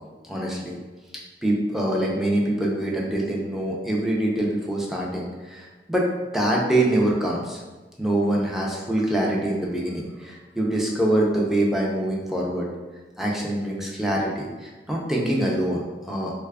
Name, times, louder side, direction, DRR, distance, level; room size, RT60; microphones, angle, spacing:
voice 1, 0.2-0.8 1.4-6.1 6.3-7.6 8.0-12.7 13.2-16.3, right 1 dB, ahead, -3 dB, 0.4 m, -24 dB
3.2 x 2.3 x 3.4 m, 1.2 s
head